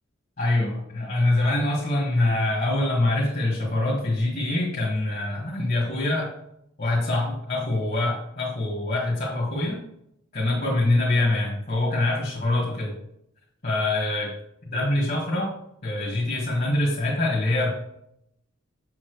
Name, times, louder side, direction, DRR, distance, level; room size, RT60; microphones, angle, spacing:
voice 1, 0.4-6.3 6.8-9.8 10.3-13.0 13.6-14.3 14.7-15.5 15.8-17.7, left 2 dB, 45° left, -5 dB, 1.9 m, -24 dB
7.4 x 7.1 x 3.3 m, 0.77 s
head